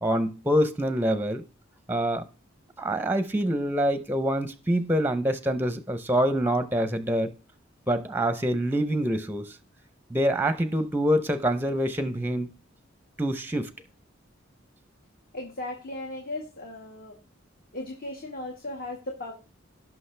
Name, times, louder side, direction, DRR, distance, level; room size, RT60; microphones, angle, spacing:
voice 1, 0.0-1.4 1.9-2.2 2.8-7.3 7.9-9.6 10.1-12.5 13.2-13.7, equal, 10° right, 0.7 m, -25 dB
voice 2, 15.3-17.2 17.7-19.3, left 2 dB, 45° left, 1.8 m, -36 dB
17.0 x 6.0 x 3.3 m
head